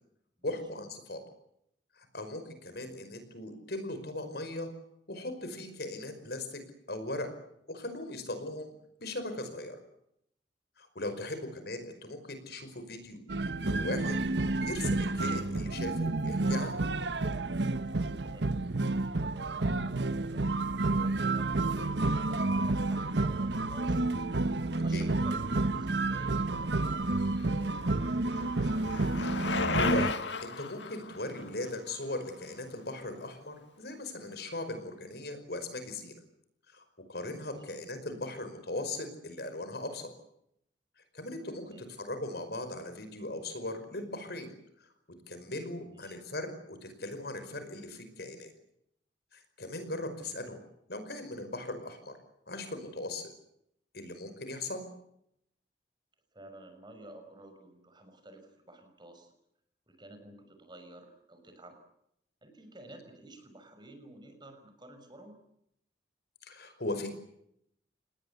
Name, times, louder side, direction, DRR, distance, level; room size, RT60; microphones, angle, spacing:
voice 1, 0.4-1.2 2.0-4.7 5.1-6.6 6.9-7.3 7.7-8.7 9.0-9.8 10.8-13.2 13.6-14.2 14.6-16.8 24.9-25.1 29.5-30.1 30.4-36.1 36.7-36.8 37.1-40.1 41.1-44.5 44.8-44.9 45.3-48.5 49.3-50.6 50.9-52.1 52.5-53.3 53.9-54.9 66.4-67.1, left 2 dB, 60° left, 9 dB, 5.3 m, -38 dB
voice 2, 2.7-3.0 18.2-18.5 18.9-20.4 20.9-24.1 24.8-27.1 27.4-28.0 41.6-41.8 45.9-46.2 50.1-50.3 56.3-59.3 59.9-61.8 62.4-65.4, right 1 dB, 25° right, 7 dB, 5.8 m, -52 dB
sound 1, 13.3-30.1, right 2 dB, 70° right, 1.2 m, -30 dB
Bicycle, 27.2-33.2, left 4 dB, 80° left, 2.0 m, -36 dB
28.0 x 20.0 x 8.2 m, 0.76 s
head